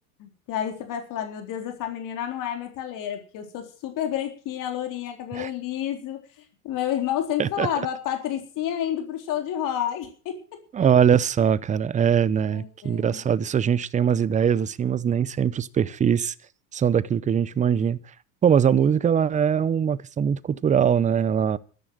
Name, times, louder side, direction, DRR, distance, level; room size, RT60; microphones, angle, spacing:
voice 1, 0.2-10.4 12.5-13.2 18.8-18.9, left 10 dB, 45° left, 4.0 m, -30 dB
voice 2, 10.7-16.3 16.7-18.0 18.4-21.6, right 8 dB, 15° right, 0.7 m, -22 dB
12.5 x 11.0 x 7.5 m
supercardioid pair, 115°, 44 cm